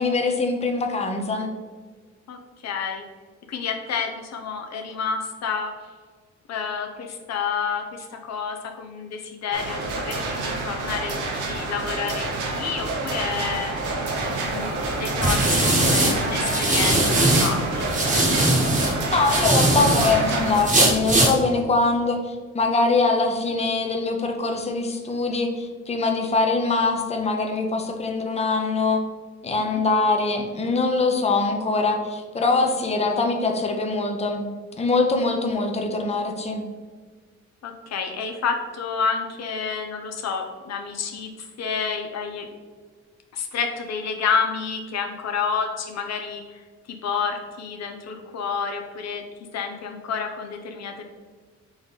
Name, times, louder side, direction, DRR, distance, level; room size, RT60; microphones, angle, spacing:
voice 1, 0.0-1.5 19.1-29.0 29.4-34.5 34.8-36.6, left 3 dB, 20° left, 3 dB, 0.6 m, -23 dB
voice 2, 2.6-3.0 3.5-5.7 6.5-13.7 14.4-17.9 29.7-29.8 37.6-41.3 41.6-42.5 43.3-46.4 47.0-49.2 49.5-51.1, left 6 dB, 60° left, 4 dB, 0.6 m, -29 dB
sound 1, 9.5-20.6, right 2 dB, 85° right, 0.9 m, -28 dB
sound 2, 14.3-17.5 17.9-20.1 20.5-21.3, right 1 dB, 25° right, 1.1 m, -20 dB
3.9 x 3.1 x 4.0 m, 1.5 s
cardioid pair, 90°, 30 cm